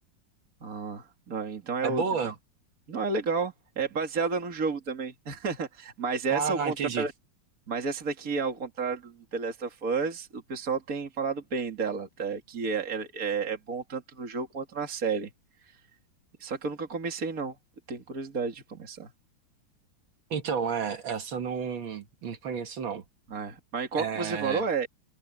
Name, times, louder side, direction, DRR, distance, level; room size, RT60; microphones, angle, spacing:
voice 1, 0.6-2.3 2.9-7.1 7.7-15.3 15.6-15.7 16.4-17.6 17.9-19.1 23.3-24.9, right 5 dB, 45° right, 2.7 m, -31 dB
voice 2, 1.8-2.3 6.3-7.0 20.3-23.0 24.0-24.6, right 6 dB, 80° right, 2.4 m, -31 dB
omnidirectional pair, 2.1 m